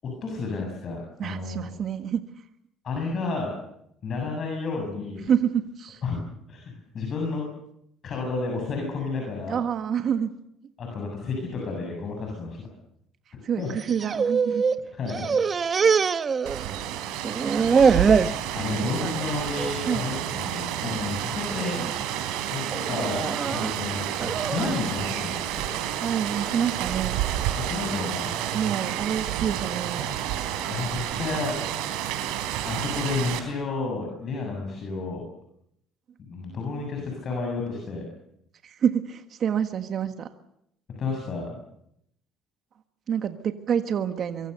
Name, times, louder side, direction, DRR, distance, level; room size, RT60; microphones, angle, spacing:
voice 1, 0.0-1.7 2.8-3.5 4.0-5.3 6.0-6.2 6.5-7.4 8.0-9.6 10.8-12.7 13.6-13.7 15.0-15.3 18.6-21.8 22.5-25.6 27.6-28.3 30.7-31.5 32.6-35.2 36.2-38.0 41.0-41.5, left 4 dB, 45° left, 1 dB, 7.4 m, -31 dB
voice 2, 1.2-2.4 5.2-6.0 9.5-10.3 10.6-10.7 13.3-14.6 18.6-19.1 19.8-20.1 26.0-27.2 28.5-30.1 38.6-40.3 43.1-44.5, right 8 dB, 50° right, 8 dB, 1.5 m, -28 dB
sound 1, 13.7-14.8 15.1-17.0 17.2-18.4 18.9-19.2 19.6-19.8 20.6-21.0 21.5-21.9 22.7-24.9, right 5 dB, 30° right, 0.9 m, -24 dB
Rain, 16.5-33.4, right 11 dB, 85° right, 4.3 m, -30 dB
24.0 x 23.5 x 6.8 m, 0.74 s
cardioid pair, 115°, 0 cm